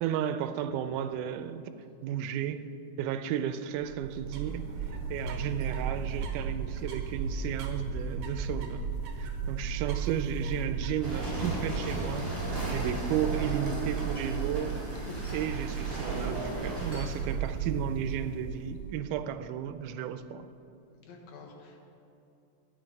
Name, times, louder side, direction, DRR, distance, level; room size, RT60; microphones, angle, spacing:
voice 1, 0.0-1.6 2.0-2.7 3.0-4.7 5.1-8.9 9.2-12.3 12.7-14.8 15.3-20.5, right 9 dB, 85° right, 11 dB, 2.1 m, -33 dB
sound 1, 3.8-19.0, right 6 dB, 65° right, 2.2 m, -35 dB
sound 2, 11.0-17.2, right 1 dB, 10° right, 2.5 m, -36 dB
voice 2, 14.8-15.3 21.0-21.8, left 4 dB, 70° left, -1 dB, 2.5 m, -48 dB
11.0 x 9.0 x 5.3 m, 2.7 s
omnidirectional pair, 3.6 m